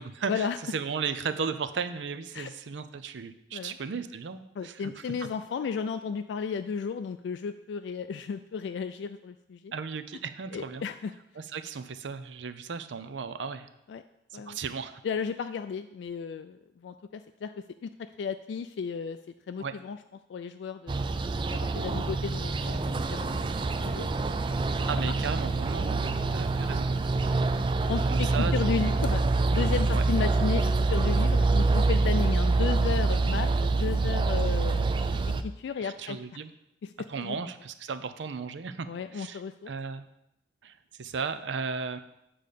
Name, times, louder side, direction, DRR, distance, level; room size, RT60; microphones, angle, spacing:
voice 1, 0.0-0.5 0.7-5.0 9.7-10.9 11.4-13.7 14.3-15.0 19.6-19.8 24.9-27.0 28.1-28.6 28.9-29.0 29.9-30.0 35.8-36.5 37.1-38.9 39.1-39.4 39.7-40.1 40.6-42.0, right 5 dB, 75° right, 11 dB, 0.5 m, -35 dB
voice 2, 4.6-9.7 10.5-11.1 13.9-14.0 14.3-14.6 15.0-17.5 17.8-17.9 18.2-19.2 19.5-20.0 20.3-21.0 21.5-24.4 25.0-25.1 27.2-27.4 27.9-34.9 35.3-36.2 36.8-36.9 37.2-37.4 38.9-39.7, left 6 dB, 75° left, 8 dB, 0.3 m, -34 dB
sound 1, 20.9-35.4, right 3 dB, 25° right, 0.3 m, -26 dB
8.4 x 3.8 x 6.7 m, 0.84 s
head